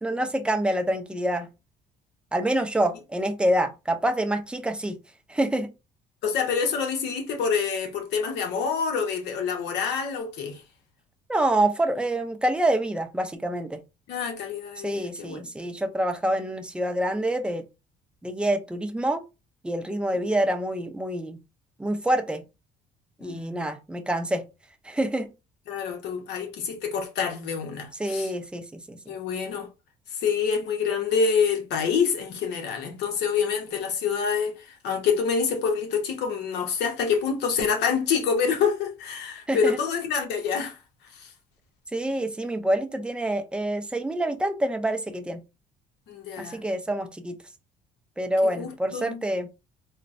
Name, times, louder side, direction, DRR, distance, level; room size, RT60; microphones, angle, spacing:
voice 1, 0.0-1.5 2.3-5.0 5.3-5.7 11.3-13.8 14.8-17.6 18.2-19.2 19.6-21.4 21.8-22.4 23.2-24.4 24.8-25.3 28.0-29.0 39.5-39.8 41.9-45.4 46.4-47.4 48.2-49.5, right 1 dB, 5° right, 0.5 m, -26 dB
voice 2, 6.2-10.6 14.1-15.4 23.2-23.7 25.7-28.3 29.1-29.7 30.2-40.8 41.1-41.3 46.1-46.6 48.4-49.2, left 6 dB, 80° left, 1.0 m, -27 dB
4.2 x 2.1 x 2.5 m
cardioid pair, 110°, 17 cm